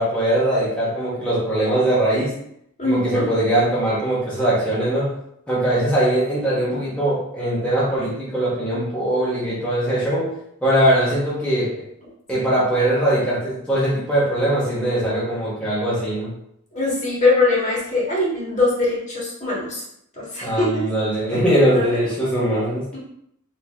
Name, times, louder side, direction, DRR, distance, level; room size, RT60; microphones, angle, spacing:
voice 1, 0.0-2.3 2.8-5.1 5.5-10.3 10.6-11.8 12.3-16.3 20.4-22.8, right 1 dB, 5° left, -10 dB, 1.2 m, -21 dB
voice 2, 2.8-3.2 16.7-19.8 20.3-20.7 21.7-21.9, left 3 dB, 35° left, -6 dB, 1.7 m, -21 dB
4.5 x 3.1 x 3.5 m, 0.75 s
head